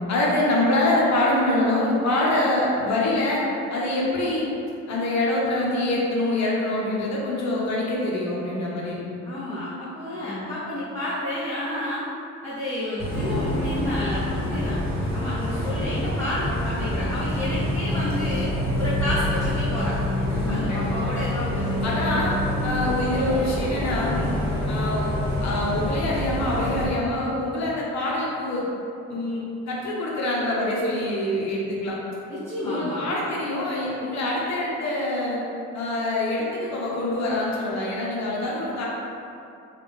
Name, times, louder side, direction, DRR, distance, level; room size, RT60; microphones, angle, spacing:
voice 1, 0.1-4.5 4.9-9.0 10.2-10.5 20.3-20.9 21.8-22.3 22.6-24.3 24.7-25.1 25.4-28.7 29.1-32.0 32.6-35.4 35.7-38.8, left 1 dB, 65° left, -4 dB, 0.9 m, -25 dB
voice 2, 9.2-12.0 12.4-14.8 15.1-18.5 18.8-22.3 32.3-33.1, left 1 dB, 10° left, -12 dB, 0.8 m, -31 dB
Bus, 13.0-26.9, left 1 dB, 5° right, 1.3 m, -26 dB
Strum, 13.1-18.4, left 4 dB, 35° left, 1.3 m, -39 dB
3.5 x 2.4 x 3.5 m, 2.7 s
cardioid pair, 90°, 30 cm